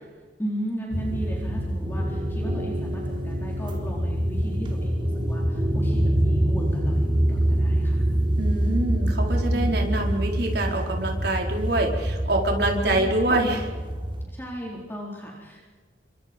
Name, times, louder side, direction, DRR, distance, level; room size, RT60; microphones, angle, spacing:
voice 1, 0.4-8.1 9.5-9.9 12.7-13.3 14.3-15.6, equal, 10° left, -2 dB, 4.1 m, -36 dB
sound 1, 0.9-14.2, right 1 dB, 25° right, 3.5 m, -25 dB
voice 2, 8.4-13.7, right 1 dB, 60° right, 1 dB, 4.5 m, -25 dB
29.5 x 25.5 x 5.3 m, 1.4 s
head